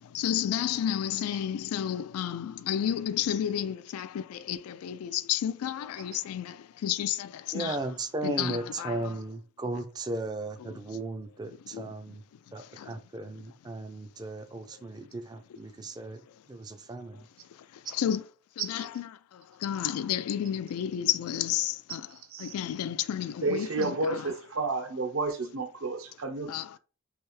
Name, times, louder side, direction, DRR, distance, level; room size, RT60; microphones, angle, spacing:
voice 1, 0.0-7.8 8.2-9.0 11.7-11.9 12.8-12.9 17.9-18.2 18.6-24.3 26.5-26.8, left 10 dB, 90° left, 0.3 m, -31 dB
voice 2, 7.5-12.2 12.5-16.2 16.5-17.3, right 2 dB, 20° right, 0.3 m, -36 dB
voice 3, 23.4-26.5, right 3 dB, 70° right, 0.7 m, -31 dB
3.3 x 2.7 x 3.1 m
head